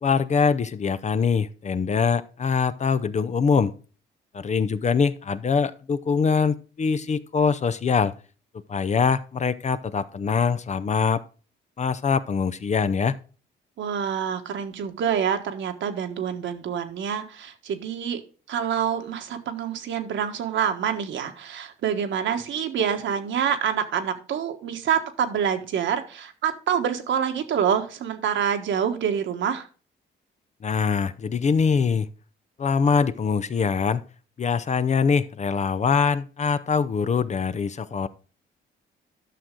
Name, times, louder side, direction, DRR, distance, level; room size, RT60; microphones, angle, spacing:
voice 1, 0.0-3.7 4.3-8.1 8.7-11.2 11.8-13.2 30.6-32.1 32.6-34.0 34.4-38.1, left 5 dB, 35° left, 14 dB, 0.6 m, -23 dB
voice 2, 13.8-18.2 18.5-29.7, right 8 dB, 70° right, 6 dB, 1.4 m, -26 dB
11.5 x 6.3 x 3.8 m, 0.37 s
cardioid pair, 90°, 20 cm